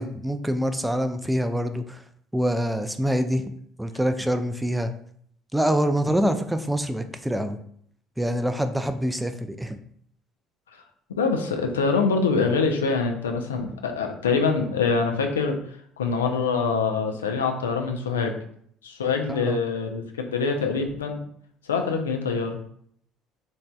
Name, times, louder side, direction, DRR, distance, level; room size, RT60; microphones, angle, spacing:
voice 1, 0.0-2.0 2.3-3.5 3.8-4.9 5.5-7.6 8.2-9.8 19.3-19.6, equal, 5° right, 8 dB, 0.3 m, -25 dB
voice 2, 11.2-15.6 16.0-18.3 18.8-21.2 21.7-22.6, left 4 dB, 85° left, 4 dB, 0.3 m, -24 dB
3.1 x 2.6 x 2.2 m, 0.64 s
hypercardioid pair, 60°, 0 cm